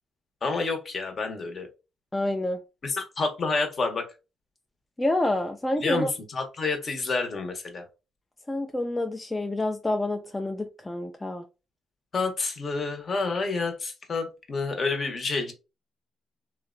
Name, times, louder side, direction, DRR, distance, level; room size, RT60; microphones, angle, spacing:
voice 1, 0.4-1.7 2.8-4.1 5.8-7.8 12.1-15.5, left 3 dB, 45° left, 0.8 m, -29 dB
voice 2, 2.1-2.6 5.0-6.1 8.5-11.4, left 1 dB, 15° left, 0.3 m, -28 dB
2.8 x 2.1 x 2.4 m
cardioid pair, 90°, 0 cm